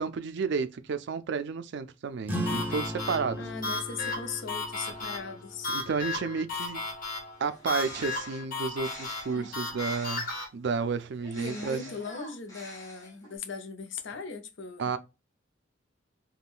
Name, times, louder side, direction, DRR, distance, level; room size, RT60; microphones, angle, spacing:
voice 1, 0.0-3.4 5.7-6.8 7.4-11.8 14.8-15.0, right 5 dB, 60° right, 0.4 m, -31 dB
sound 1, 2.2-7.3, equal, 10° right, 0.6 m, -38 dB
sound 2, 2.5-10.5, left 3 dB, 45° left, 1.1 m, -35 dB
voice 2, 3.4-5.7 9.3-9.5 11.3-14.9, left 4 dB, 65° left, 0.6 m, -39 dB
Bird, 7.4-10.5 11.2-13.4, left 1 dB, 15° left, 1.1 m, -47 dB
3.5 x 2.2 x 2.4 m
head